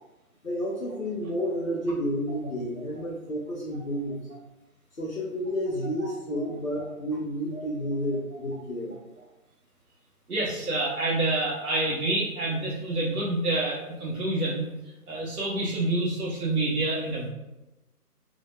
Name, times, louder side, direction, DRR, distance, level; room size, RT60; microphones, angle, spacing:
voice 1, 0.4-4.2 4.9-9.0, equal, 60° left, -3 dB, 0.6 m, -30 dB
voice 2, 6.0-6.4 7.5-7.6 10.3-14.7 15.1-17.3, right 2 dB, 70° right, -5 dB, 0.6 m, -28 dB
2.1 x 2.0 x 3.0 m, 1.0 s
figure-of-eight pair, 180°, 47 cm